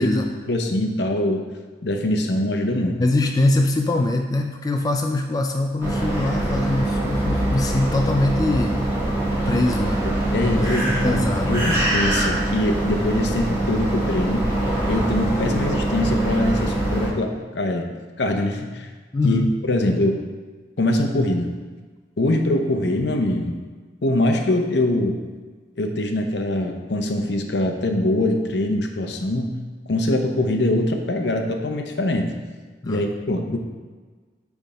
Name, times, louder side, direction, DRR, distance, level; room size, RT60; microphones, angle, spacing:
voice 1, 0.0-1.4 1.8-3.0 10.3-14.5 14.9-17.9 18.2-18.9 19.2-20.2 20.8-21.5 22.2-23.6 24.0-25.2 25.8-29.6 29.9-32.3 32.9-33.6, left 1 dB, 70° left, 4 dB, 0.8 m, -23 dB
voice 2, 3.0-8.8 9.5-10.1 10.4-11.6 19.1-19.6 32.8-33.0, left 2 dB, 20° left, 3 dB, 0.3 m, -23 dB
sound 1, 5.8-17.1, right 1 dB, 15° right, 1.8 m, -23 dB
9.1 x 3.5 x 4.1 m, 1.4 s
head